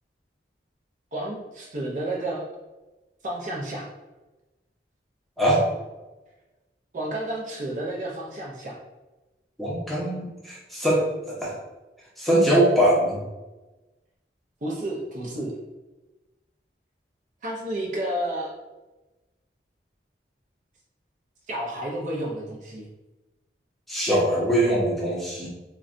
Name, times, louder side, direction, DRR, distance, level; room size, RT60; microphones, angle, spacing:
voice 1, 1.1-2.5 3.2-3.9 6.9-8.8 14.6-15.6 17.4-18.5 21.5-22.9, right 1 dB, 45° right, -2 dB, 0.5 m, -31 dB
voice 2, 5.4-5.7 9.6-11.6 12.2-13.2 23.9-25.5, right 1 dB, ahead, -6 dB, 0.6 m, -22 dB
3.8 x 2.1 x 2.5 m, 1.1 s
head